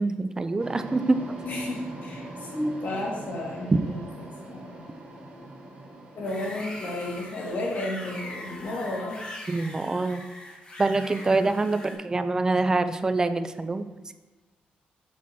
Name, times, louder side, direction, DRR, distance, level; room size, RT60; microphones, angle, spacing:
voice 1, 0.0-1.4 9.5-10.2 10.8-13.9, right 3 dB, 20° right, 10 dB, 0.4 m, -25 dB
sound 1, 0.6-7.5, right 1 dB, 50° right, 2.0 m, -42 dB
voice 2, 1.4-4.9 6.1-9.3, left 1 dB, 55° left, -3 dB, 1.9 m, -33 dB
sound 2, 6.2-11.9, left 1 dB, 35° left, 1.5 m, -41 dB
7.3 x 6.0 x 2.8 m, 1.2 s
cardioid pair, 135°, 3 cm